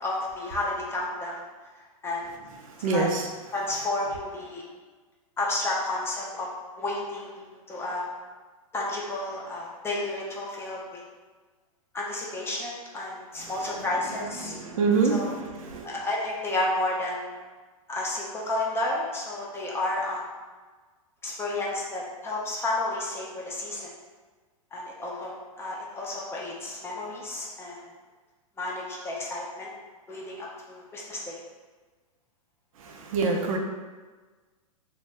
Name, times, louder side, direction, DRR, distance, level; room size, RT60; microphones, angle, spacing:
voice 1, 0.0-1.4 2.0-2.3 2.8-3.1 3.5-4.6 5.4-6.5 6.8-8.0 8.7-11.0 11.9-14.6 15.1-15.3 15.8-17.4 17.9-20.2 21.2-23.9 24.7-27.9 28.6-29.7 30.1-31.4, left 2 dB, 15° left, -3 dB, 0.5 m, -31 dB
voice 2, 2.8-3.3 14.4-15.9 32.8-33.6, right 4 dB, 70° right, 2 dB, 0.5 m, -26 dB
2.7 x 2.1 x 3.2 m, 1.3 s
hypercardioid pair, 120°, 18 cm